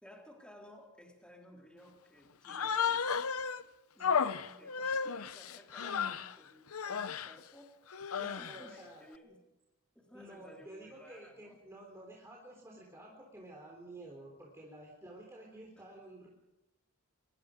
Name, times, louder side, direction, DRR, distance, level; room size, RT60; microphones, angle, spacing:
voice 1, 0.0-3.5 3.9-7.7 8.2-9.4 10.0-11.6, left 1 dB, 5° left, 0 dB, 3.6 m, -56 dB
Human voice, 2.4-3.6 4.0-6.3 6.7-7.3 7.9-8.7, left 6 dB, 75° left, 0.8 m, -33 dB
voice 2, 5.8-6.2 8.1-9.1 10.1-16.3, right 1 dB, 15° right, -1 dB, 3.7 m, -51 dB
24.0 x 22.5 x 5.1 m, 0.97 s
head